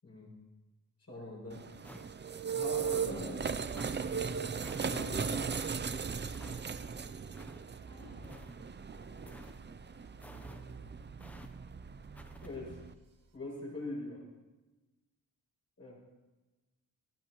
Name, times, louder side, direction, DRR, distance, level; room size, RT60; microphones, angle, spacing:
voice 1, 1.1-1.6 2.5-3.5 4.7-5.6 12.4-12.8 13.3-14.2 15.8-15.9, left 2 dB, 40° left, -4 dB, 6.5 m, -42 dB
sound 1, 1.5-12.9, right 6 dB, 30° right, 0.5 m, -38 dB
sound 2, 1.8-2.3 2.8-3.2 3.7-4.0 4.6-4.9 5.5-5.7 6.3-6.6 7.3-7.6 8.2-8.7 9.3-9.6 10.2-10.6 11.2-11.5 12.2-12.5, equal, 5° left, 0.8 m, -52 dB
sound 3, 7.7-13.4, right 2 dB, 60° right, 2.2 m, -57 dB
voice 2, 7.8-9.9 10.3-10.8, left 1 dB, 20° left, -5 dB, 5.2 m, -59 dB
21.5 x 15.5 x 3.1 m, 1.1 s
wide cardioid pair, 150°, 36 cm